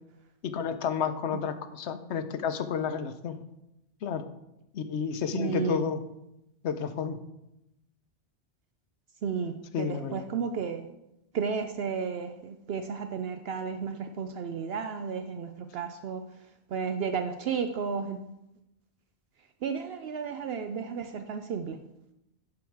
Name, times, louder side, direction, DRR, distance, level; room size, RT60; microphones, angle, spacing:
voice 1, 0.4-3.4 4.0-4.2 4.7-6.0 6.6-7.2 9.7-10.2, left 7 dB, 85° left, 10 dB, 1.0 m, -31 dB
voice 2, 5.3-5.9 9.2-10.9 11.3-16.2 16.7-18.2 19.6-21.8, right 6 dB, 70° right, 7 dB, 0.8 m, -33 dB
11.0 x 4.8 x 4.7 m, 0.87 s
omnidirectional pair, 1.1 m